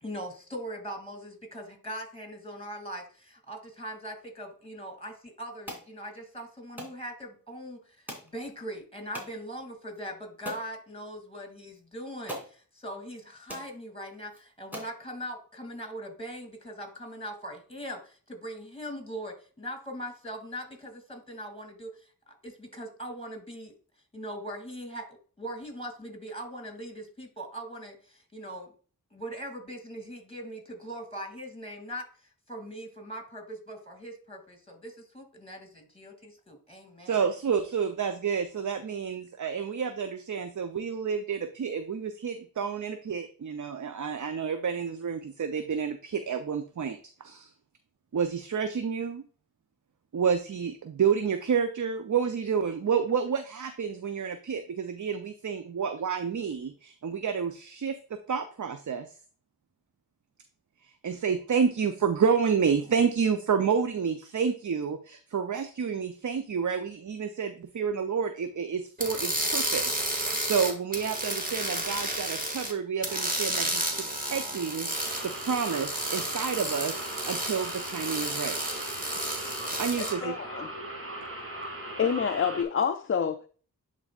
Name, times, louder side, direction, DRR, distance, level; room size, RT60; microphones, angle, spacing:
voice 1, 0.0-23.7 24.1-28.7 29.1-37.3, equal, 15° left, 2.5 m, -41 dB
sound 1, 5.7-5.9 6.8-7.0 8.1-8.3 9.1-9.3 9.9-10.0 10.5-10.7 11.7-11.8 12.3-12.5 13.2-13.3 13.5-13.7 14.3-14.4 14.7-15.0, equal, 5° right, 2.9 m, -40 dB
voice 2, 37.1-47.5 48.1-49.2 50.1-59.1 61.0-73.8 74.3-77.0 77.3-78.6 79.8-80.3, right 6 dB, 55° right, 0.7 m, -29 dB
sound 2, 69.0-72.7 73.0-80.1, right 1 dB, 25° right, 1.9 m, -32 dB
sound 3, 74.9-82.6, right 1 dB, 40° right, 2.0 m, -39 dB
voice 3, 80.0-80.7 82.0-83.5, left 7 dB, 35° left, 0.4 m, -28 dB
10.5 x 4.0 x 2.4 m
cardioid pair, 45°, 36 cm